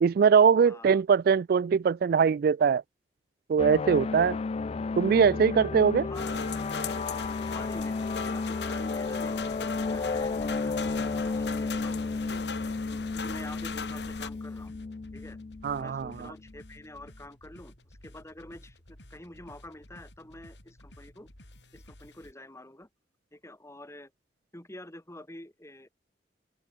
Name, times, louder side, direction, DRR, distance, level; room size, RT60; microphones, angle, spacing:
voice 1, 0.0-2.8 3.5-4.4 5.0-6.1 15.6-16.1, right 6 dB, 55° right, 0.3 m, -22 dB
voice 2, 0.6-1.0 6.1-6.4 7.4-14.7 15.1-15.4 15.7-21.3 21.7-22.9 23.3-24.1 24.5-25.9, left 1 dB, 15° left, 3.7 m, -48 dB
sound 1, 3.6-16.6, left 4 dB, 35° left, 0.4 m, -33 dB
sound 2, 6.1-14.3, left 5 dB, 75° left, 3.1 m, -39 dB
sound 3, 9.5-22.3, left 1 dB, 90° left, 5.8 m, -53 dB
head